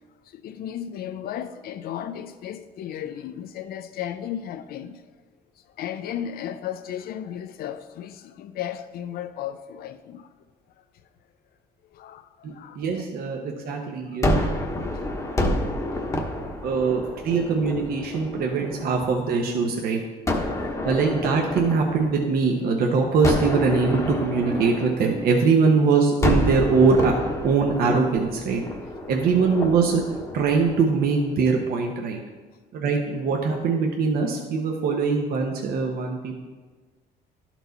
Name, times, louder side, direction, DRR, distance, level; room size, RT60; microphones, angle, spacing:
voice 1, 0.3-5.0 5.8-10.3 11.9-13.4 14.7-15.4 15.7-16.3 18.3-18.4 20.3-20.6, left 10 dB, 65° left, 0.5 m, -35 dB
voice 2, 12.4-14.4 16.6-20.0 20.8-27.2 27.4-28.6 29.1-30.0 30.3-32.2 32.7-36.4, right 4 dB, 65° right, 0.9 m, -22 dB
Gunshot gunfire, 14.2-19.3 20.3-22.7 23.2-25.7 26.2-31.4, left 1 dB, 20° left, 1.0 m, -29 dB
11.5 x 4.5 x 4.0 m
cardioid pair, 110°, 17 cm